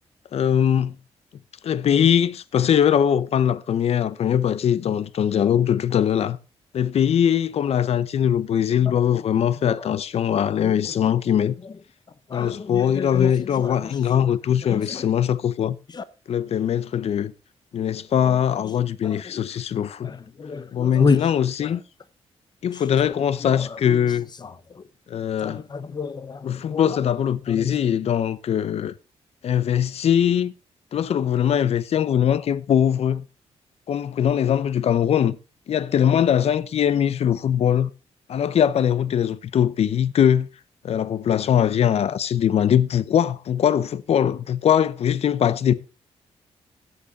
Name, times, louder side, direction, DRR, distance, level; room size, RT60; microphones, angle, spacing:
voice 1, 0.3-0.9 1.6-6.4 6.7-11.5 12.3-15.8 16.3-17.3 17.7-20.1 20.7-21.8 22.6-24.3 25.1-25.6 26.4-28.9 29.4-30.5 30.9-33.2 33.9-35.4 35.7-37.9 38.3-40.5 40.8-45.7, left 9 dB, 65° left, 0.7 m, -21 dB
voice 2, 8.8-9.2 9.6-9.9 12.3-14.3 14.6-15.1 15.9-16.0 18.2-18.4 18.6-18.7 19.0-19.4 20.0-21.2 22.9-24.0 24.4-24.8 25.4-27.0 27.5-27.7, left 4 dB, 40° left, 0.9 m, -30 dB
13.5 x 8.2 x 4.1 m
cardioid pair, 100°, 11 cm